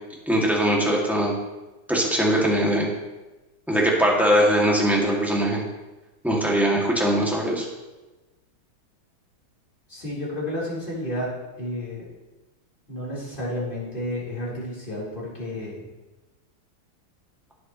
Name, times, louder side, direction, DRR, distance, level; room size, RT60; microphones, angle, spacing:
voice 1, 0.3-1.3 1.9-2.9 3.7-5.6 6.2-7.6, equal, ahead, -3 dB, 2.1 m, -21 dB
voice 2, 9.9-12.1 12.9-15.9, left 1 dB, 25° left, -7 dB, 4.2 m, -31 dB
16.5 x 8.1 x 3.1 m, 1.1 s
omnidirectional pair, 2.3 m